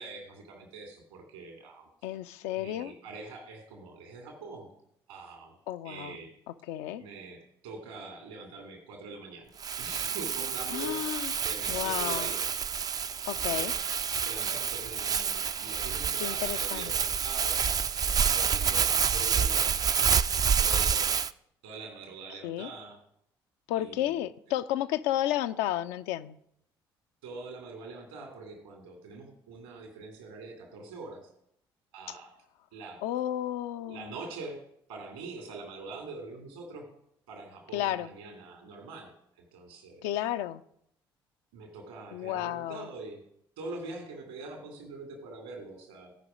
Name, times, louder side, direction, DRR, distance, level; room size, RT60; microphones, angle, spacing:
voice 1, 0.0-2.2 2.5-4.7 5.1-5.5 5.8-6.3 7.0-9.5 9.8-11.0 11.4-12.5 13.4-13.8 14.3-17.6 18.0-20.0 20.6-21.1 21.6-23.0 23.8-24.2 27.2-31.2 31.9-32.3 32.7-33.0 33.8-34.6 34.9-36.9 37.3-39.1 39.4-40.1 41.5-43.2 43.6-46.1, right 3 dB, 70° right, 2.5 m, -44 dB
voice 2, 2.0-2.9 5.7-6.1 6.7-7.0 10.7-11.3 11.7-12.3 13.3-13.7 16.2-16.9 22.4-22.7 23.7-26.4 33.0-34.1 37.7-38.1 40.0-40.6 42.1-42.9, left 12 dB, 65° left, 0.5 m, -32 dB
Crumpling crinkling, 9.6-21.3, right 7 dB, 30° right, 0.4 m, -28 dB
16.0 x 5.4 x 5.1 m
figure-of-eight pair, 50°, 12 cm